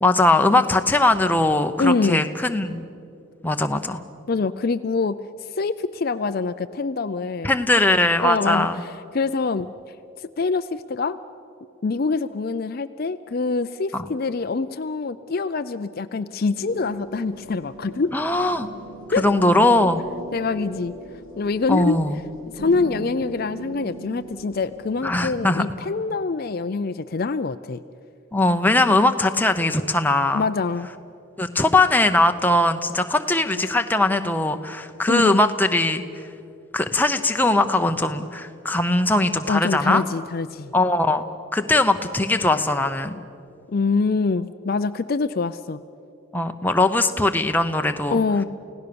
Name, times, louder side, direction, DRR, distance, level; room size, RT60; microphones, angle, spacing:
voice 1, 0.0-2.8 3.4-4.0 7.4-8.8 13.9-14.0 18.1-18.7 19.2-20.0 21.7-22.2 25.0-25.6 28.3-30.4 31.4-36.0 36.7-40.0 40.7-41.2 41.5-43.2 46.3-48.2, left 2 dB, 10° left, 6 dB, 0.8 m, -20 dB
voice 2, 1.8-2.3 4.3-7.5 8.2-9.7 10.2-11.2 11.8-18.1 19.1-19.2 20.3-20.9 21.4-22.0 22.5-27.8 30.3-30.9 35.1-35.4 39.5-40.7 43.7-45.8 48.1-48.4, left 4 dB, 45° left, 11 dB, 0.4 m, -25 dB
sound 1, 16.6-25.7, right 2 dB, 70° right, 2.3 m, -39 dB
29.5 x 17.0 x 6.9 m, 2.7 s
head